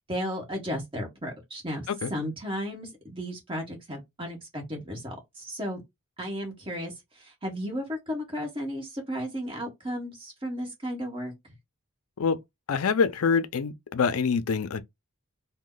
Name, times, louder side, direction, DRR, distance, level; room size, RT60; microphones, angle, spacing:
voice 1, 0.1-5.8 6.2-11.3, equal, 25° right, 1.4 m, -34 dB
voice 2, 12.7-14.8, left 5 dB, 70° left, 0.5 m, -25 dB
3.0 x 2.1 x 3.8 m
head